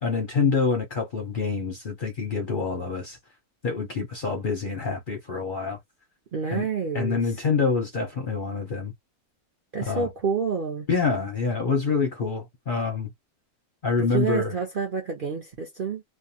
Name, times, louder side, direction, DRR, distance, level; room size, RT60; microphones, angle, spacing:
voice 1, 0.0-3.2 3.6-5.8 6.5-6.7 6.9-8.9 9.9-10.1 10.9-13.1 13.8-14.5, left 4 dB, 50° left, 0.7 m, -26 dB
voice 2, 6.3-7.2 9.7-10.9 14.0-16.0, right 5 dB, 55° right, 0.6 m, -28 dB
2.5 x 2.2 x 2.6 m
omnidirectional pair, 1.6 m